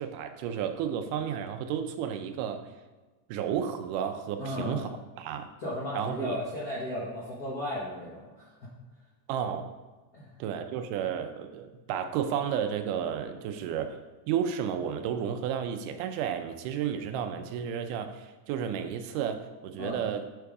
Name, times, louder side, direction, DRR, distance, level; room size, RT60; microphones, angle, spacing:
voice 1, 0.0-2.7 3.3-4.9 5.2-5.5 5.9-6.4 9.3-9.7 10.4-14.0 14.3-20.3, right 8 dB, 90° right, 7 dB, 2.2 m, -32 dB
voice 2, 4.4-4.9 5.6-8.7 10.1-10.3 19.8-20.0, left 1 dB, 70° left, -6 dB, 0.8 m, -35 dB
7.7 x 3.5 x 4.7 m, 1.3 s
omnidirectional pair, 3.6 m